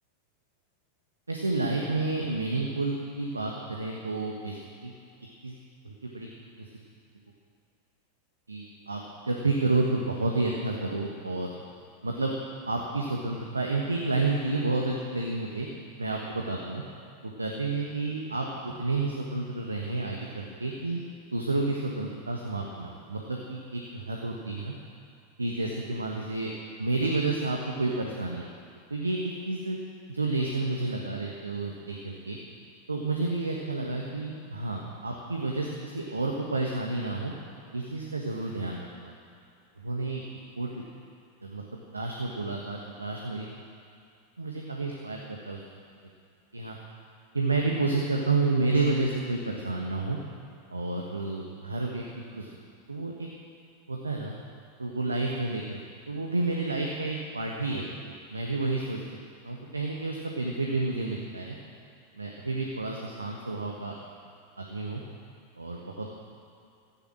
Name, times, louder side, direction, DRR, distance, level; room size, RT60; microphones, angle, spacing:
voice 1, 1.3-4.6 4.8-4.9 5.4-5.5 5.8-6.3 8.5-11.5 12.0-12.4 12.7-15.7 16.0-16.8 17.4-21.0 21.3-24.7 25.4-26.5 26.8-28.5 28.9-29.8 30.1-32.4 32.9-37.3 37.7-39.1 39.8-40.2 40.6-40.7 41.4-41.6 41.9-43.5 44.4-45.6 46.5-46.8 47.3-50.2 50.7-52.0 52.3-52.5 52.9-53.3 53.9-54.3 54.8-55.8 56.1-59.0 59.4-61.6 62.2-64.0 64.6-65.0 65.6-66.1, right 3 dB, 80° right, -1 dB, 1.4 m, -30 dB
14.5 x 10.0 x 7.6 m, 2.5 s
figure-of-eight pair, 90°, 0 cm